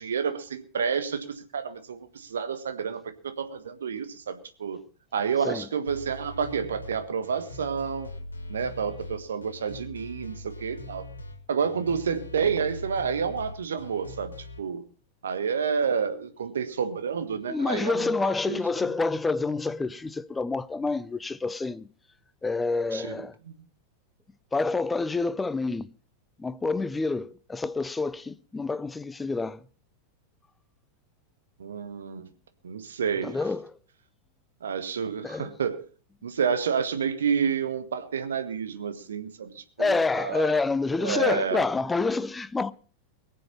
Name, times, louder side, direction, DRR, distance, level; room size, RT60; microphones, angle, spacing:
voice 1, 0.0-4.8 5.1-8.1 8.5-11.0 11.5-14.8 15.2-18.6 22.9-23.1 23.5-23.6 31.6-32.3 32.6-33.4 34.6-35.8 36.2-40.6 41.0-41.6, right 6 dB, 65° right, 1.5 m, -29 dB
sound 1, 5.9-14.6, left 2 dB, 75° left, 2.0 m, -42 dB
voice 2, 17.4-21.9 22.4-23.4 24.5-25.9 26.4-29.7 33.2-33.8 35.2-35.5 39.8-42.7, left 3 dB, 10° left, 0.6 m, -28 dB
22.0 x 7.5 x 5.4 m
figure-of-eight pair, 90°, 0 cm